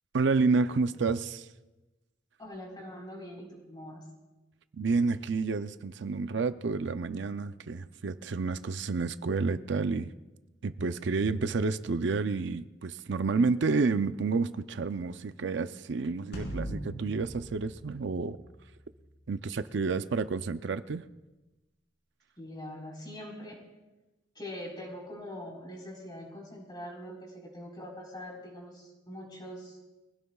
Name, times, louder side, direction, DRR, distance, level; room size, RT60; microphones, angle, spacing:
voice 1, 0.1-1.5 4.7-10.1 10.6-18.4 19.3-21.0, right 4 dB, 65° right, 11 dB, 0.5 m, -29 dB
voice 2, 2.4-4.0 22.4-23.6 24.3-29.8, left 1 dB, 25° left, -1 dB, 4.2 m, -43 dB
sound 1, 16.3-18.9, equal, 60° left, 4.1 m, -40 dB
23.5 x 16.5 x 2.3 m, 1.1 s
head